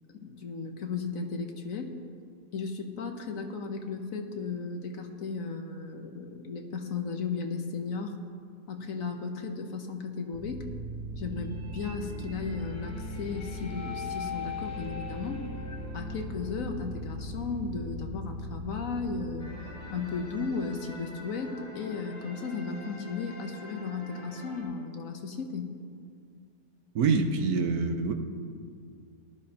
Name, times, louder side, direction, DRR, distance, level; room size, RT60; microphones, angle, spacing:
voice 1, 0.1-2.0 2.5-8.1 8.7-10.7 11.2-15.4 15.9-19.5 19.9-25.7, left 4 dB, 60° left, 4 dB, 1.3 m, -35 dB
sound 1, 10.3-21.2, left 1 dB, 10° left, 1.6 m, -39 dB
sound 2, 19.4-24.6, left 1 dB, 80° left, 4.4 m, -46 dB
voice 2, 26.9-28.1, right 4 dB, 70° right, 6 dB, 1.3 m, -25 dB
19.0 x 12.5 x 2.9 m, 2.2 s
omnidirectional pair, 1.7 m